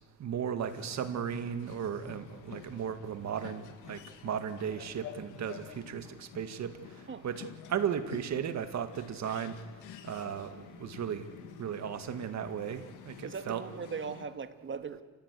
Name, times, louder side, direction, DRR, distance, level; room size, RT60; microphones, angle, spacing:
voice 1, 0.2-6.7 7.2-9.6 10.0-13.6, right 8 dB, 65° right, 10 dB, 1.9 m, -36 dB
sound 1, 0.7-14.3, left 10 dB, 90° left, 1.7 m, -49 dB
voice 2, 13.2-15.0, right 6 dB, 40° right, 10 dB, 1.6 m, -39 dB
29.5 x 15.0 x 8.4 m, 1.3 s
cardioid pair, 90°, 30 cm